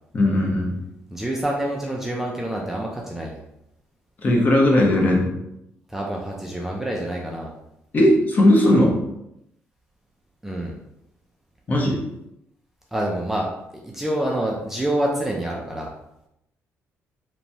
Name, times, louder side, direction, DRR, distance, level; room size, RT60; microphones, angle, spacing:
voice 1, 0.1-0.7 4.2-5.3 7.9-9.0 11.7-12.0, left 1 dB, 35° left, -1 dB, 0.7 m, -17 dB
voice 2, 1.1-3.4 5.9-7.5 10.4-10.8 12.9-13.5 13.8-15.9, right 1 dB, 5° right, -2 dB, 0.3 m, -27 dB
2.9 x 2.2 x 2.6 m, 0.84 s
cardioid pair, 135°, 5 cm